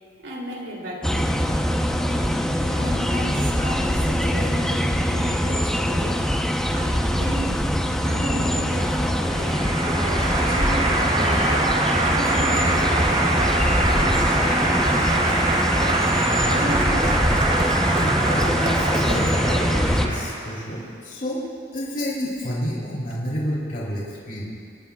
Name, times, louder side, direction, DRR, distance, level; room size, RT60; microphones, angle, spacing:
voice 1, 0.2-1.6 2.6-6.2 6.7-7.7 8.0-15.6 16.4-17.1, equal, 80° right, -2 dB, 3.1 m, -34 dB
sound 1, 1.0-20.1, equal, 5° left, 0.8 m, -23 dB
Applause, 8.2-20.7, right 2 dB, 45° right, 3.6 m, -24 dB
voice 2, 17.8-21.4 21.7-24.5, equal, 50° left, -6 dB, 3.6 m, -29 dB
25.5 x 18.5 x 2.4 m, 2.2 s
head